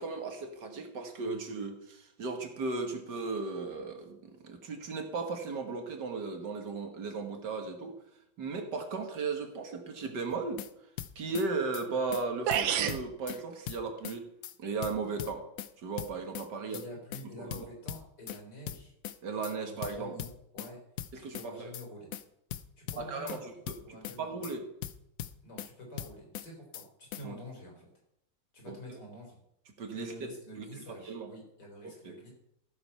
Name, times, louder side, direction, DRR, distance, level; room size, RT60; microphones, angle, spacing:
voice 1, 0.0-7.9 8.4-10.6 11.2-14.3 14.6-15.4 15.8-16.8 17.4-17.7 19.2-20.1 21.1-21.7 23.0-24.7 27.2-27.3 28.7-28.8 29.8-30.3 30.7-31.3 32.0-32.1, right 4 dB, 60° right, 5 dB, 2.0 m, -36 dB
sound 1, 10.3-10.7 11.0-11.5 11.7-11.9 12.1-12.2 12.5-13.4 13.7-14.2 14.4-14.5 14.8-15.7 16.0-16.5 16.7-16.9 17.1-17.2 17.5-18.4 18.7-19.2 19.4-19.5 19.8-20.7 21.0-21.5 21.7-21.9 22.1-22.2 22.5-23.4 23.7-24.2 24.4-24.5 24.8-25.7 26.0-26.5 26.7-26.9 27.1-27.2, left 12 dB, 85° left, 0.7 m, -40 dB
sound 2, 12.1-12.2 12.5-13.0, right 10 dB, 75° right, 1.5 m, -28 dB
voice 2, 16.7-18.9 19.3-20.8 21.2-22.1 22.8-24.5 25.4-27.9 28.5-29.4 29.9-32.3, left 1 dB, 55° left, 0 dB, 4.6 m, -48 dB
14.5 x 7.7 x 5.6 m, 0.78 s
omnidirectional pair, 2.2 m